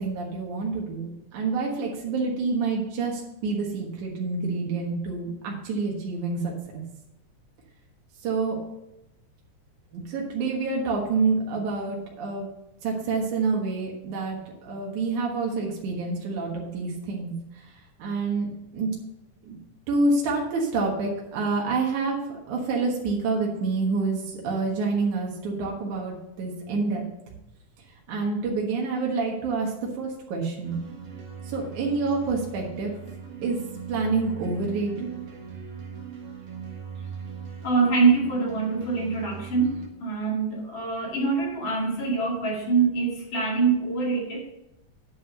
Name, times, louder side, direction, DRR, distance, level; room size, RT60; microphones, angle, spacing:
voice 1, 0.0-6.8 8.2-8.6 9.9-12.5 12.8-17.3 18.0-18.9 19.5-19.6 19.9-22.2 22.5-27.0 28.1-30.8 31.5-32.9 33.4-33.6 33.9-35.1, right 3 dB, 75° right, -2 dB, 2.9 m, -27 dB
sound 1, 30.6-39.9, right 7 dB, 55° right, 2.3 m, -40 dB
voice 2, 37.6-44.5, right 4 dB, 40° left, -2 dB, 2.7 m, -24 dB
9.8 x 5.4 x 6.7 m, 0.88 s
omnidirectional pair, 3.5 m